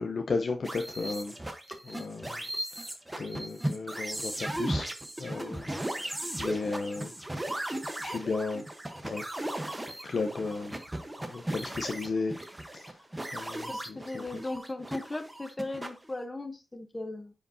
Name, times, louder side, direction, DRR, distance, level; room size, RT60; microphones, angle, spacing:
voice 1, 0.0-1.3 1.9-2.4 3.2-4.9 5.2-6.1 6.4-7.1 8.0-8.6 9.0-9.2 10.0-10.8 11.3-12.3 12.7-12.9 13.3-14.2, left 3 dB, 60° left, 0.7 m, -34 dB
sound 1, 0.6-16.2, right 1 dB, 10° right, 1.0 m, -37 dB
voice 2, 13.7-17.3, left 2 dB, 20° left, 0.8 m, -37 dB
9.8 x 5.0 x 2.7 m
wide cardioid pair, 175°, 0 cm